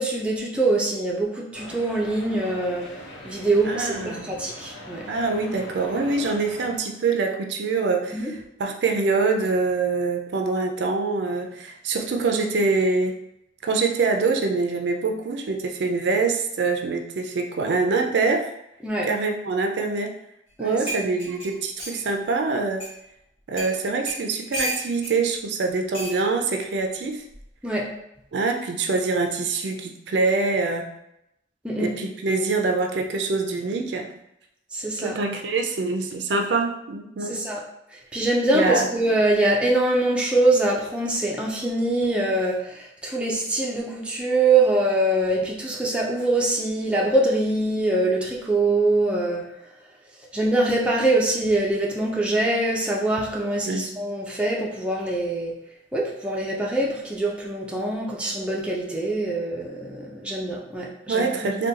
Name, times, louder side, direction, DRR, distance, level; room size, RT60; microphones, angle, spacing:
voice 1, 0.0-2.9 3.2-5.0 8.1-8.3 18.8-19.1 20.6-21.1 27.6-27.9 31.6-31.9 34.7-35.2 37.2-37.6 37.9-49.5 50.3-55.5 55.9-61.5, right 2 dB, 5° right, -4 dB, 0.5 m, -24 dB
sound 1, 1.5-6.8, left 1 dB, 90° left, 0.8 m, -41 dB
voice 2, 3.6-4.3 5.1-8.2 8.6-13.2 13.6-18.5 19.1-20.1 20.6-22.9 23.5-27.2 28.3-30.9 31.8-34.1 35.0-37.4 38.5-38.9 53.7-53.9 61.1-61.7, right 3 dB, 70° right, 3 dB, 0.4 m, -24 dB
sound 2, 20.5-20.6 20.9-22.0 22.8-22.9 23.6-23.7 24.1-25.1 25.9-26.2 27.3-27.6, right 1 dB, 30° left, 1.4 m, -32 dB
3.7 x 2.2 x 2.7 m, 0.81 s
head